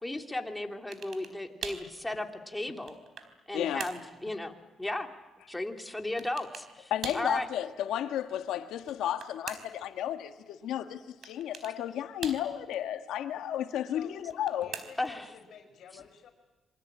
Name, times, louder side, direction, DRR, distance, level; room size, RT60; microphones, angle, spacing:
voice 1, 0.0-2.9 3.5-5.1 5.5-7.5 15.0-15.3, left 1 dB, 10° left, 2.9 m, -35 dB
sound 1, 0.9-1.4 1.6-1.9 2.5-3.4 3.8-4.1 6.2-6.7 7.0-7.3 8.7-9.8 11.2-11.8 12.2-12.8 14.2-15.2, right 6 dB, 60° right, 3.8 m, -42 dB
voice 2, 3.5-3.9 6.9-14.7, left 11 dB, 85° left, 1.6 m, -33 dB
voice 3, 13.8-14.2 14.6-16.3, left 7 dB, 65° left, 5.6 m, -51 dB
27.5 x 24.0 x 8.9 m
cardioid pair, 90°, 0 cm